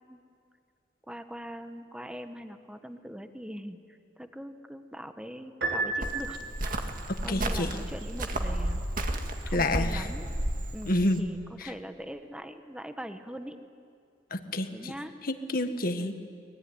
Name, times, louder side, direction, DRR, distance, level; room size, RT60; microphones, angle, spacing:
voice 1, 1.1-6.4 7.2-8.8 9.2-10.3 10.7-13.6 14.7-15.2 16.0-16.2, equal, 5° right, 8 dB, 1.2 m, -42 dB
Piano, 5.6-6.9, right 3 dB, 80° right, 4.4 m, -32 dB
Cricket, 6.0-11.2, right 1 dB, 50° right, 2.0 m, -32 dB
voice 2, 7.1-7.7 9.5-10.1 10.9-11.2 11.6-11.7 14.3-14.9 15.2-16.1, left 1 dB, 55° left, 8 dB, 1.6 m, -29 dB
24.0 x 20.5 x 9.7 m, 2.3 s
head